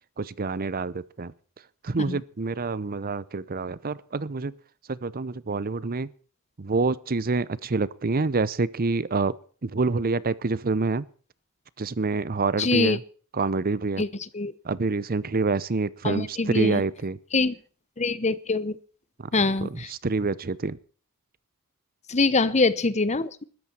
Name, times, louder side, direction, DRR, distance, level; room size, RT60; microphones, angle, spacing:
voice 1, 0.2-1.3 1.8-4.5 4.9-6.1 6.6-9.3 9.6-11.1 11.8-13.0 13.3-14.0 14.6-17.2 19.2-19.3 19.6-20.8, right 3 dB, 40° right, 0.7 m, -27 dB
voice 2, 12.6-13.0 14.0-14.1 14.3-14.5 16.0-16.8 17.3-17.5 18.0-18.8 19.3-19.9 22.1-23.5, left 3 dB, 30° left, 0.9 m, -24 dB
21.0 x 13.5 x 4.4 m
head